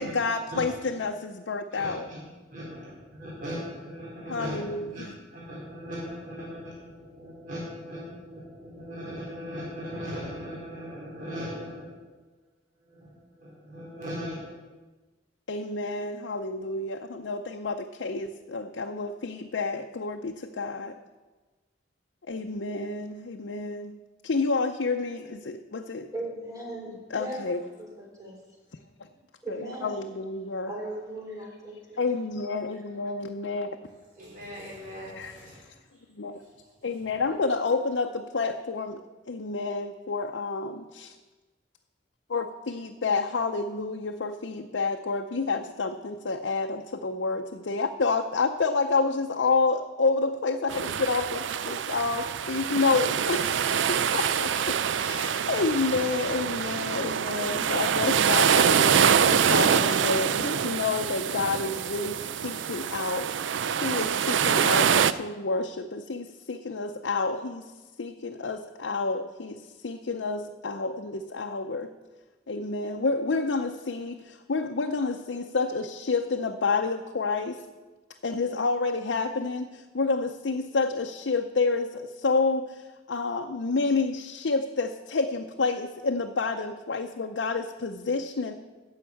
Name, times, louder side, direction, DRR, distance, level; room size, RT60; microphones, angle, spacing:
voice 1, 0.0-2.0 4.3-4.9 15.5-20.9 22.3-25.1 25.5-26.1 27.1-27.6 29.5-29.6 29.8-30.7 32.0-33.7 35.2-35.3 36.2-36.4 36.8-39.0 39.3-41.1 42.3-63.3 63.8-67.7 68.0-71.9 72.5-77.6 78.2-88.5, left 3 dB, 85° left, 4 dB, 0.6 m, -29 dB
voice 2, 1.7-2.2 2.5-12.0 12.8-14.4 34.1-36.0 36.4-36.7 37.0-37.2, equal, 45° right, -6 dB, 4.1 m, -39 dB
voice 3, 26.1-27.4 27.8-28.3 29.4-29.9 30.7-32.0 34.2-34.3, right 1 dB, 20° right, -3 dB, 3.5 m, -38 dB
sound 1, 50.7-65.1, right 7 dB, 90° right, 0.4 m, -25 dB
10.0 x 7.3 x 8.6 m, 1.2 s
head